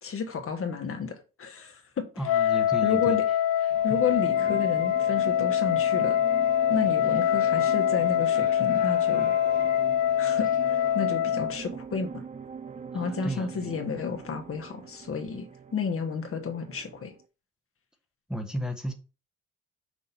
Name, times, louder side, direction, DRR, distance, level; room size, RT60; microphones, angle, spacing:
voice 1, 0.0-2.1 2.4-3.2 3.6-6.2 6.7-9.3 10.2-12.2 12.9-17.1, left 5 dB, 45° left, 1.3 m, -32 dB
Wind instrument woodwind instrument, 2.2-11.6, left 10 dB, 70° left, 0.4 m, -24 dB
voice 2, 2.2-3.2 3.9-4.0 12.9-13.8 18.3-18.9, equal, ahead, 1.1 m, -34 dB
sound 1, 3.7-11.2, left 3 dB, 25° left, 1.1 m, -44 dB
sound 2, 3.9-17.2, right 6 dB, 25° right, 0.5 m, -43 dB
6.3 x 2.8 x 5.4 m
cardioid pair, 90°, 30 cm